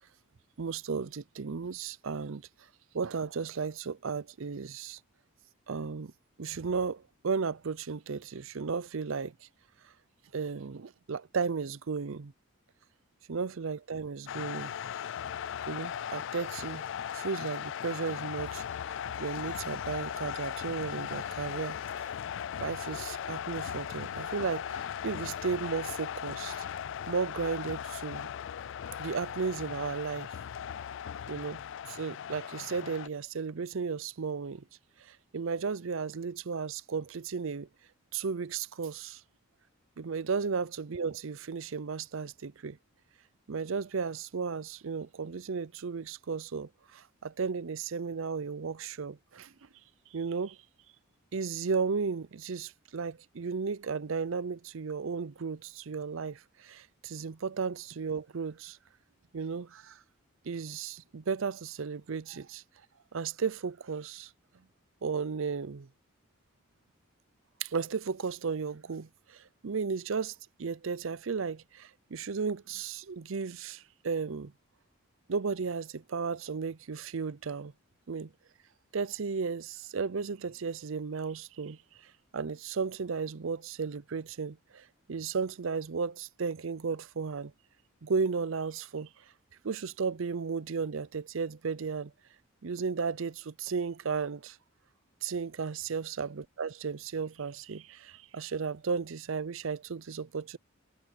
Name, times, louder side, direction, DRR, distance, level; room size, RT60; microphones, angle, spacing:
voice 1, 0.6-2.4 2.9-5.0 5.7-6.1 6.4-9.3 10.3-12.3 13.3-14.7 15.7-16.8 17.1-18.9 19.2-22.1 22.6-26.7 27.1-28.3 29.0-30.3 31.3-31.6 31.9-34.6 35.0-37.7 38.1-39.2 40.0-42.8 43.5-49.5 50.1-50.6 51.3-58.8 59.3-60.0 60.4-62.6 63.1-64.3 65.0-65.9 67.6-74.5 75.3-77.7 78.1-78.3 78.9-81.8 82.3-87.5 88.0-89.1 89.6-92.1 92.6-94.6 95.2-100.6, right 5 dB, 65° right, 0.5 m, -34 dB
sound 1, 14.3-33.1, left 9 dB, 60° left, 0.3 m, -38 dB
head